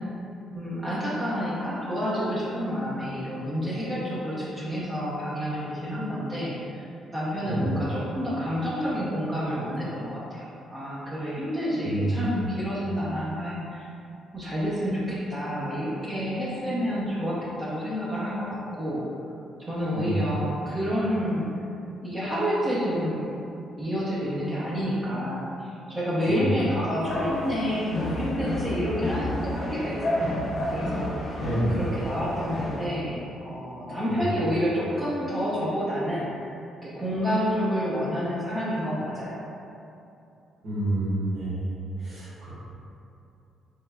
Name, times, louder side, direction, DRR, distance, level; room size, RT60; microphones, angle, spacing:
voice 1, 0.5-6.9 7.1-13.9 14.3-19.1 19.6-21.5 22.0-23.2 23.8-31.4 31.7-36.5 36.8-39.4, equal, 25° right, -8 dB, 0.7 m, -29 dB
voice 2, 11.8-12.5 19.9-20.2 26.3-26.6 31.4-31.8 34.1-34.3 40.6-41.7 42.0-42.5, right 1 dB, 65° right, -10 dB, 1.4 m, -28 dB
sound 1, 27.1-32.9, left 1 dB, 35° left, 0.7 m, -31 dB
4.4 x 3.1 x 2.3 m, 2.7 s
cardioid pair, 105°, 0 cm